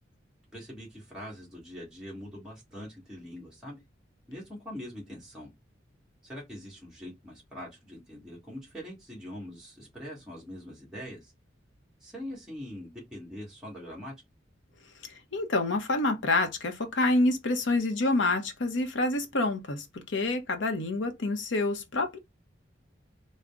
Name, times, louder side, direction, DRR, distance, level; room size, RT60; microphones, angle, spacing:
voice 1, 0.5-3.8 4.3-5.5 6.2-11.3 12.0-14.1, equal, 5° right, 1.4 m, -43 dB
voice 2, 15.3-19.8 20.1-22.2, left 2 dB, 70° left, 0.7 m, -27 dB
3.7 x 2.1 x 3.4 m
head